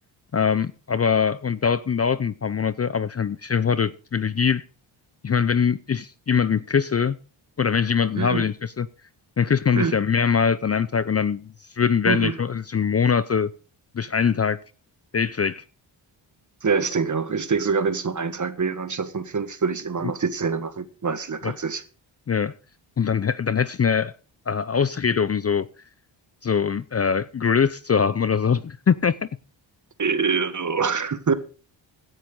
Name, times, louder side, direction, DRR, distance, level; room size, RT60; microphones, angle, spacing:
voice 1, 0.3-4.6 5.2-7.2 7.6-8.9 9.4-13.5 13.9-14.6 15.1-15.6 21.4-21.5 22.3-22.5 23.0-24.1 24.5-25.7 26.4-29.2, left 6 dB, 30° left, 0.6 m, -22 dB
voice 2, 16.6-21.8 30.0-31.3, right 5 dB, 40° right, 1.7 m, -25 dB
16.5 x 10.0 x 3.9 m
cardioid pair, 75°, 48 cm